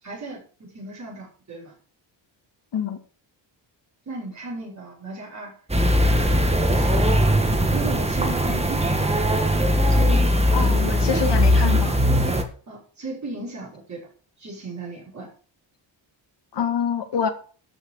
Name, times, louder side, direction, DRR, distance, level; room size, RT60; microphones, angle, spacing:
voice 1, 0.0-1.7 4.1-5.5 5.9-6.4 6.7-7.1 7.7-9.5 9.9-10.9 12.7-14.1 14.4-15.3, right 2 dB, 40° right, 5.5 m, -36 dB
sound 1, 5.7-12.4, equal, 15° right, 1.8 m, -20 dB
voice 2, 10.5-12.0 16.5-17.3, left 7 dB, 65° left, 2.2 m, -26 dB
13.0 x 6.5 x 6.6 m
wide cardioid pair, 130°, 45 cm